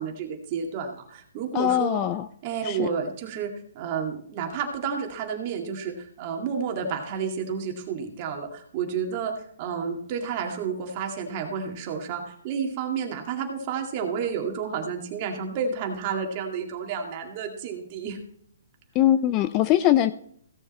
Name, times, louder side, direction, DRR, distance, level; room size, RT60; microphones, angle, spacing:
voice 1, 0.0-2.0 2.4-18.2, right 6 dB, 30° right, 2 dB, 2.1 m, -31 dB
voice 2, 1.5-2.3 2.6-2.9 18.9-20.1, left 12 dB, 20° left, 13 dB, 0.4 m, -21 dB
16.5 x 7.2 x 4.3 m, 0.63 s
hypercardioid pair, 170°, 0 cm